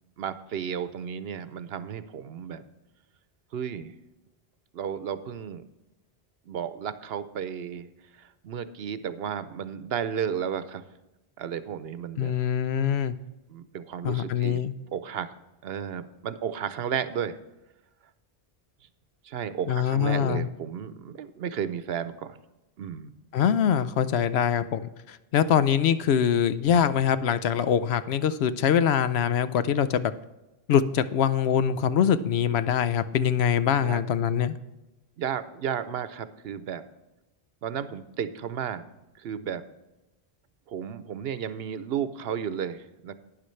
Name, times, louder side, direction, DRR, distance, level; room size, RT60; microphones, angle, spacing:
voice 1, 0.2-2.7 3.5-3.9 4.7-5.6 6.5-7.9 8.1-10.8 11.4-12.3 13.5-14.7 14.9-15.3 15.6-17.4 19.2-22.4 22.8-23.1 33.8-34.0 35.2-36.8 37.6-38.9 39.2-39.6 40.7-43.1, right 8 dB, 70° right, 13 dB, 0.9 m, -33 dB
voice 2, 12.2-13.1 14.0-14.7 19.7-20.5 23.3-30.1 30.7-34.6, left 8 dB, 80° left, 13 dB, 0.9 m, -24 dB
12.0 x 9.7 x 3.2 m, 1.0 s
omnidirectional pair, 1.1 m